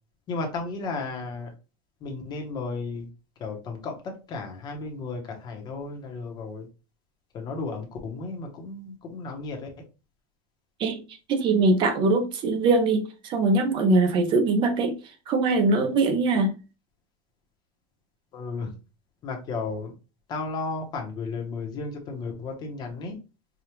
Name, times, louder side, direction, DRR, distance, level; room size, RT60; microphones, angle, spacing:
voice 1, 0.3-1.5 2.0-3.1 3.4-6.7 7.3-9.7 18.3-18.7 19.2-19.9 20.3-23.2, left 3 dB, 25° left, 0.9 m, -34 dB
voice 2, 11.3-15.0 15.3-16.5, right 3 dB, 25° right, 0.5 m, -22 dB
4.9 x 2.4 x 2.9 m
supercardioid pair, 170°, 18 cm